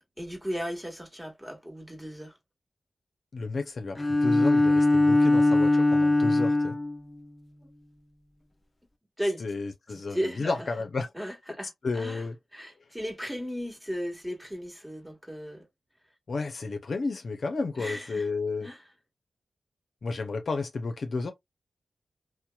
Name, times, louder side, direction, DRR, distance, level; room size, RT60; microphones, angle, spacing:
voice 1, 0.2-2.3 9.2-9.4 9.9-10.7 11.1-12.2 12.5-15.6 17.8-18.2 18.6-18.8, equal, 5° right, 1.4 m, -35 dB
voice 2, 3.3-6.8 9.4-11.1 11.8-12.4 16.3-18.7 20.0-21.3, left 3 dB, 65° left, 0.6 m, -32 dB
Bowed string instrument, 4.0-7.0, left 2 dB, 25° left, 0.6 m, -21 dB
2.8 x 2.1 x 2.3 m
cardioid pair, 45°, 0 cm